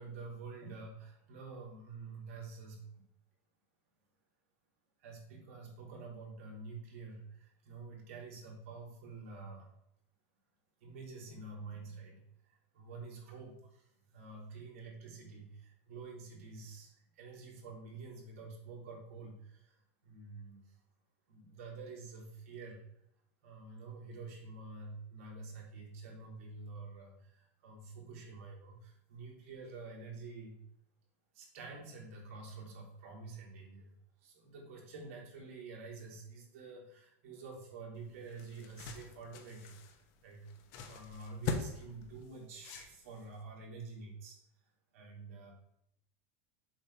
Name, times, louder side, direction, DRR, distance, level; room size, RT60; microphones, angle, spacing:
voice 1, 0.0-3.0 5.0-9.7 10.8-19.8 20.0-20.6 21.3-22.8 23.4-30.6 31.3-33.9 34.2-39.7 40.2-40.5 40.9-44.4 44.9-45.5, right 4 dB, 70° right, -3 dB, 2.9 m, -48 dB
sound 1, 38.0-43.4, left 4 dB, 45° left, 0.9 m, -43 dB
7.4 x 3.3 x 5.8 m, 0.76 s
supercardioid pair, 170°, 8 cm